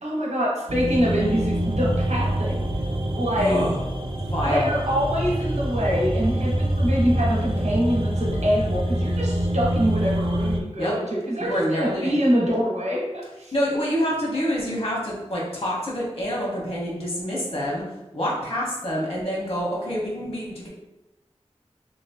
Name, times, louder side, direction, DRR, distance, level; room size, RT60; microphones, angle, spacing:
voice 1, 0.0-2.7 3.1-3.6 4.4-13.5, equal, 80° right, -4 dB, 1.0 m, -25 dB
sound 1, 0.7-10.6, right 1 dB, 50° right, 0.5 m, -25 dB
voice 2, 3.3-3.7 4.1-4.7 10.8-11.0 11.4-12.1 13.5-17.8 18.1-20.7, equal, 60° left, -4 dB, 1.2 m, -27 dB
3.0 x 3.0 x 2.9 m, 0.98 s
wide cardioid pair, 55°, 11 cm